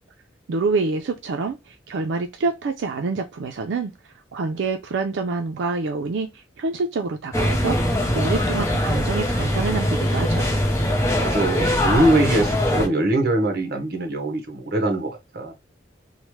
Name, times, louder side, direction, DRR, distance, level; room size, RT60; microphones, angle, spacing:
voice 1, 0.5-3.9 4.3-10.6, right 4 dB, 85° right, 0.4 m, -27 dB
sound 1, 7.3-12.9, left 1 dB, 15° left, 0.5 m, -22 dB
voice 2, 11.1-15.5, right 1 dB, 55° right, 0.8 m, -22 dB
3.0 x 2.1 x 3.0 m
head